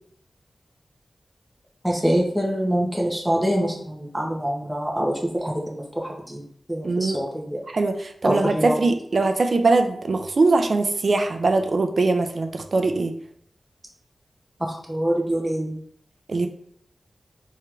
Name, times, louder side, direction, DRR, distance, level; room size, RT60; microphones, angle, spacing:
voice 1, 1.8-6.4 6.7-7.6 8.2-8.8 14.6-15.8, equal, 5° right, -2 dB, 1.2 m, -25 dB
voice 2, 6.8-7.2 7.7-13.1 16.3-16.5, right 3 dB, 60° right, 7 dB, 0.6 m, -21 dB
4.3 x 3.6 x 3.3 m, 0.65 s
wide cardioid pair, 75°, 0 cm